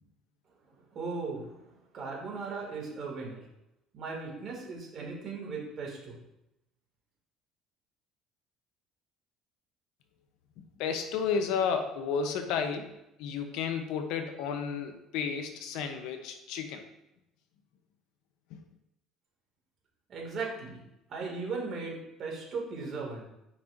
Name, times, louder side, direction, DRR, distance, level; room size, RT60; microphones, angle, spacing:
voice 1, 0.9-3.4 3.9-6.2 20.1-20.8 21.1-23.3, right 4 dB, 50° right, -1 dB, 2.3 m, -37 dB
voice 2, 10.8-16.8, left 6 dB, 80° left, 6 dB, 0.8 m, -32 dB
8.5 x 5.4 x 2.7 m, 0.87 s
cardioid pair, 110°, 0 cm